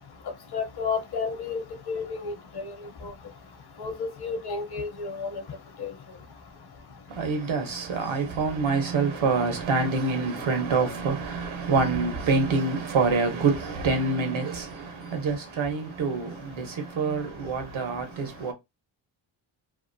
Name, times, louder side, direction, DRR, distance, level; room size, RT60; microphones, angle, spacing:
voice 1, 0.5-2.7 3.0-3.1 3.8-5.4 5.8-5.9, left 5 dB, 55° left, 0.8 m, -32 dB
voice 2, 7.1-18.5, right 4 dB, 80° right, 1.0 m, -26 dB
2.7 x 2.5 x 2.6 m
cardioid pair, 95°, 47 cm